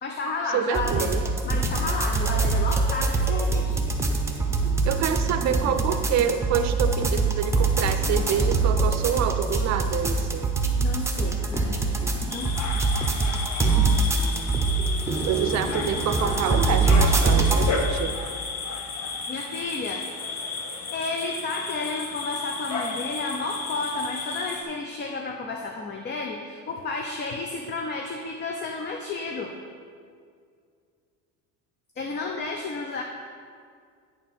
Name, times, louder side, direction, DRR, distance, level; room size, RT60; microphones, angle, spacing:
voice 1, 0.0-1.1 1.4-3.8 10.8-11.9 12.2-12.8 19.3-20.0 20.9-29.5 32.0-33.0, left 3 dB, 30° left, 2 dB, 0.7 m, -32 dB
voice 2, 0.5-1.2 4.9-10.5 15.3-18.2, right 9 dB, 50° right, 9 dB, 0.6 m, -27 dB
sound 1, 0.7-17.7, right 3 dB, 10° right, 0.8 m, -24 dB
sound 2, 12.3-24.6, left 4 dB, 50° left, 1.2 m, -33 dB
9.2 x 4.6 x 5.6 m, 2.2 s
cardioid pair, 130°, 34 cm